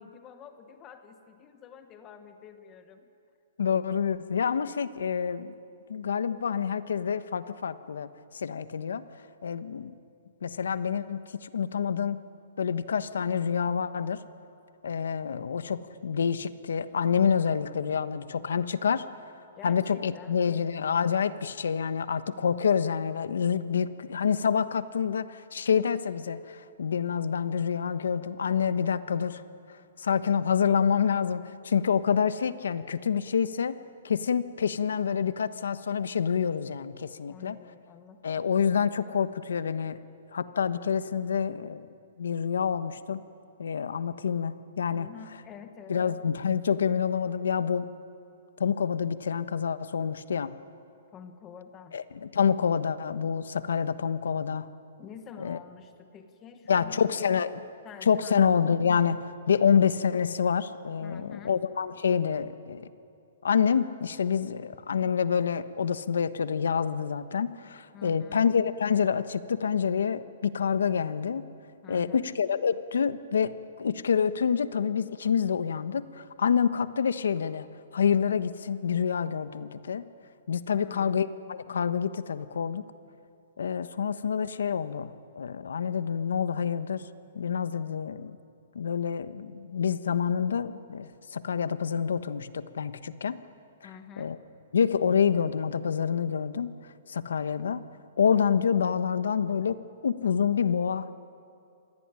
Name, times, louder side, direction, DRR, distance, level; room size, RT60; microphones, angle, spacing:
voice 1, 0.0-3.1 19.6-20.6 37.2-38.5 44.9-46.0 51.1-52.0 55.0-57.4 57.8-58.5 61.0-61.5 67.9-68.4 71.8-72.3 80.7-81.3 93.8-94.3, left 7 dB, 15° left, 8 dB, 1.2 m, -48 dB
voice 2, 3.6-5.6 5.9-8.1 8.3-9.0 9.4-10.0 10.4-12.2 12.6-14.2 14.8-19.0 19.6-29.4 30.0-33.7 34.0-37.6 38.2-40.0 40.3-41.9 42.2-43.2 43.6-45.1 45.9-47.9 48.6-50.5 51.9-54.7 55.4-55.6 56.7-57.6 58.0-62.9 63.4-71.4 71.9-73.5 73.8-77.7 77.9-80.0 80.5-82.8 83.6-87.0 87.3-88.4 88.7-93.4 93.8-93.9 94.2-94.4 94.7-96.7 97.1-97.8 98.2-101.1, left 7 dB, 85° left, 12 dB, 1.3 m, -27 dB
26.5 x 19.5 x 9.9 m, 2.6 s
hypercardioid pair, 175°, 0 cm